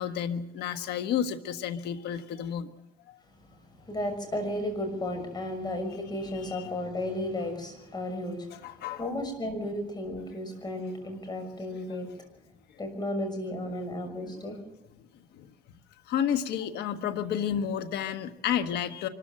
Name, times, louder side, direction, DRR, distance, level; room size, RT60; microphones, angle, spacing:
voice 1, 0.0-2.7 3.1-3.2 6.3-6.7 8.5-9.1 11.8-12.0 13.7-13.8 14.2-14.5 15.3-15.5 16.1-19.1, left 9 dB, 75° left, 9 dB, 1.4 m, -31 dB
voice 2, 3.8-8.7 9.0-12.1 12.8-14.6, left 1 dB, 25° left, 6 dB, 6.2 m, -34 dB
24.5 x 14.0 x 7.7 m, 0.88 s
cardioid pair, 110°, 17 cm